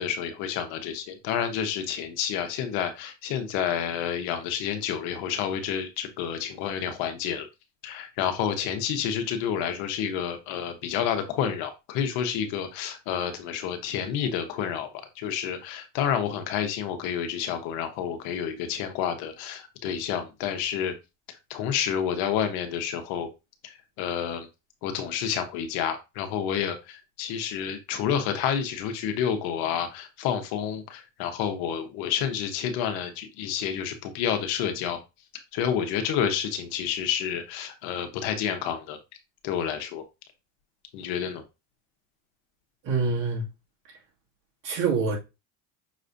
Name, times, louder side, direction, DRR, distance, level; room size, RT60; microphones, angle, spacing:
voice 1, 0.0-7.5 7.8-14.9 15.2-20.9 21.5-23.3 23.6-24.5 24.8-35.0 35.3-39.0 39.4-40.0 40.9-41.4, left 8 dB, 75° left, 1.1 m, -29 dB
voice 2, 42.8-43.5 44.6-45.2, right 4 dB, 55° right, 2.3 m, -25 dB
6.0 x 3.2 x 2.6 m
supercardioid pair, 105°, 38 cm